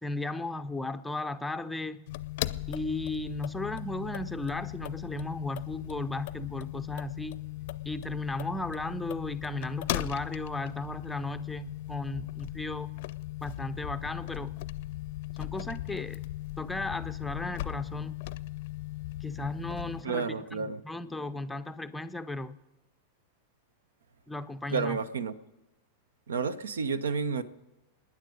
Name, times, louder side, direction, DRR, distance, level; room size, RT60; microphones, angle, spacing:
voice 1, 0.0-2.1 2.7-7.4 7.9-12.9 13.4-14.5 15.4-16.2 16.6-18.1 19.2-22.6 24.3-25.0, left 2 dB, 5° left, 10 dB, 0.6 m, -35 dB
sound 1, 2.1-20.0, left 16 dB, 50° left, 0.5 m, -38 dB
voice 2, 20.0-20.8 24.7-25.3 26.3-27.4, right 5 dB, 65° right, 17 dB, 0.7 m, -30 dB
26.5 x 9.9 x 5.1 m, 1.0 s
figure-of-eight pair, 90°, 0 cm